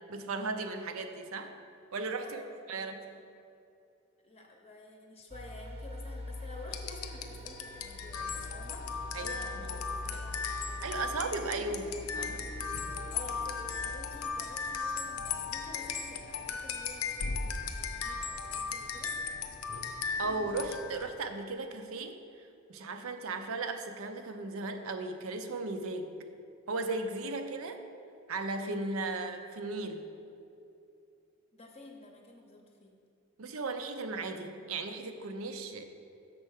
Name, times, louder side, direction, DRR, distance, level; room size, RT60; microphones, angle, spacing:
voice 1, 0.1-1.5 1.9-2.4 2.7-3.1 9.1-9.4 9.7-9.8 10.1-10.2 10.8-12.5 20.2-22.2 22.7-26.1 26.7-27.8 28.3-30.1 33.4-35.8, right 3 dB, 75° right, 7 dB, 0.6 m, -36 dB
voice 2, 2.2-3.2 4.2-10.8 11.2-12.0 13.1-19.1 31.5-32.9, left 1 dB, 30° left, 1 dB, 0.7 m, -51 dB
sound 1, 5.3-13.8, left 1 dB, 25° right, 0.5 m, -43 dB
sound 2, 6.7-21.1, left 5 dB, 85° left, 0.6 m, -37 dB
6.5 x 4.6 x 6.4 m, 2.6 s
head